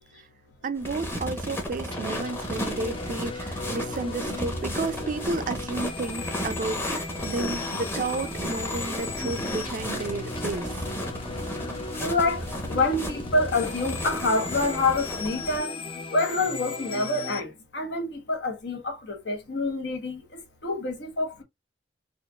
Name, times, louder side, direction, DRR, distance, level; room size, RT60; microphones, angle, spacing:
voice 1, 0.6-10.7, right 3 dB, 45° right, 0.4 m, -32 dB
sound 1, 0.8-15.6, equal, 15° left, 0.9 m, -34 dB
sound 2, 1.9-17.4, left 4 dB, 30° left, 0.5 m, -37 dB
voice 2, 12.0-21.4, left 2 dB, 70° left, 1.2 m, -27 dB
4.4 x 2.5 x 2.3 m
head